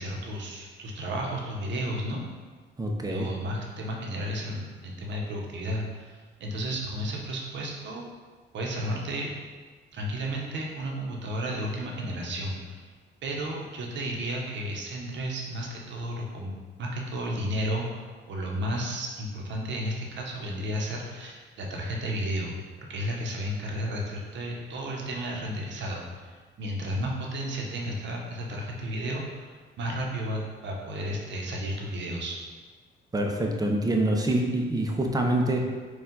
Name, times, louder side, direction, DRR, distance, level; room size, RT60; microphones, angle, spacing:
voice 1, 0.0-2.2 3.1-8.0 8.5-9.3 9.9-12.8 13.2-16.5 16.8-22.6 22.9-32.3, equal, 65° right, -1 dB, 0.8 m, -33 dB
voice 2, 2.8-3.3 33.1-35.7, right 1 dB, 20° right, 1 dB, 0.6 m, -26 dB
4.4 x 2.4 x 3.8 m, 1.5 s
cardioid pair, 90°, 20 cm